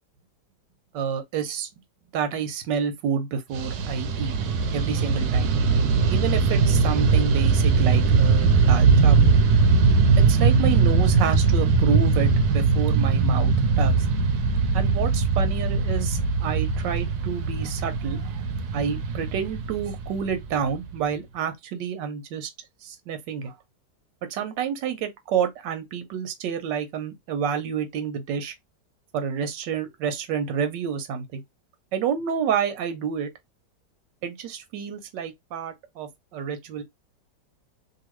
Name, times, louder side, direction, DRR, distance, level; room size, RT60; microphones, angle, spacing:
voice 1, 0.9-1.7 2.1-4.3 4.7-5.5 6.1-9.3 10.3-14.0 14.7-18.4 18.7-22.5 22.8-23.5 24.3-28.5 29.1-31.4 31.9-33.3 34.2-36.8, right 7 dB, 90° right, 1.3 m, -29 dB
Fixed-wing aircraft airplane, 3.5-21.0, right 4 dB, 70° right, 1.0 m, -21 dB
2.8 x 2.6 x 3.0 m
omnidirectional pair, 1.9 m